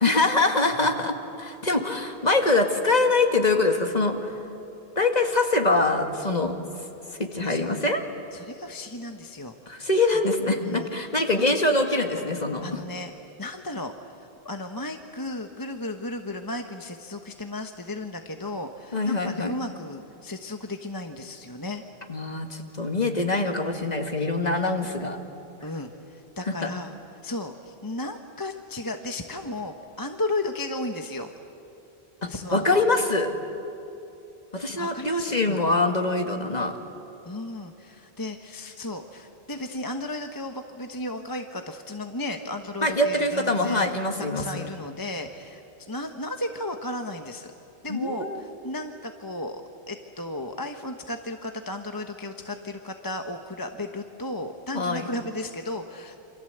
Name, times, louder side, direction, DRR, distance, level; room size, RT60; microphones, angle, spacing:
voice 1, 0.0-4.4 5.0-6.6 7.2-8.0 9.7-12.7 18.9-19.5 22.1-25.2 26.5-26.6 32.2-33.3 34.5-36.7 42.8-44.4 47.9-48.4 54.7-55.0, left 2 dB, 40° left, 4 dB, 2.1 m, -24 dB
voice 2, 7.4-7.7 8.3-9.8 10.6-11.4 12.6-13.1 13.4-21.8 25.6-31.3 32.2-32.8 34.8-35.6 37.2-43.9 44.3-47.5 47.8-56.2, left 2 dB, 20° left, 5 dB, 1.1 m, -34 dB
28.0 x 26.0 x 8.0 m, 2.9 s
omnidirectional pair, 1.0 m